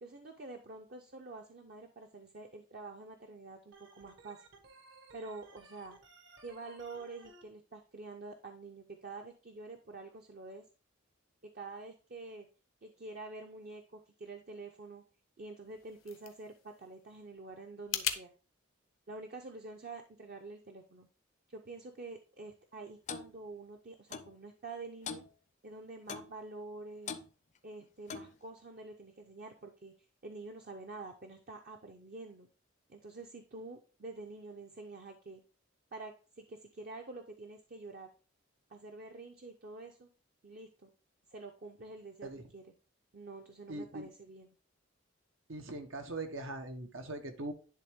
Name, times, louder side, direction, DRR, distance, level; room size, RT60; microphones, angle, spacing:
voice 1, 0.0-4.4 5.1-6.0 6.4-10.6 11.4-12.5 12.8-15.0 15.4-18.3 19.1-21.1 21.5-25.2 25.6-27.1 27.6-29.9 30.2-32.5 32.9-35.4 35.9-38.1 38.7-40.1 40.4-40.9 41.3-42.6 43.1-44.5, right 3 dB, 50° right, 3 dB, 0.7 m, -47 dB
Organ, 3.7-7.4, right 4 dB, 65° right, 1.3 m, -58 dB
sound 1, 15.6-18.2, left 10 dB, 85° left, 0.8 m, -40 dB
Clock, 23.1-23.3 24.1-24.3 25.1-25.3 26.1-26.3 27.1-27.3 28.1-28.4, left 6 dB, 40° left, 0.5 m, -41 dB
voice 2, 43.7-44.1 45.5-47.5, right 2 dB, 85° right, 6 dB, 1.2 m, -41 dB
10.5 x 3.5 x 3.5 m, 0.36 s
head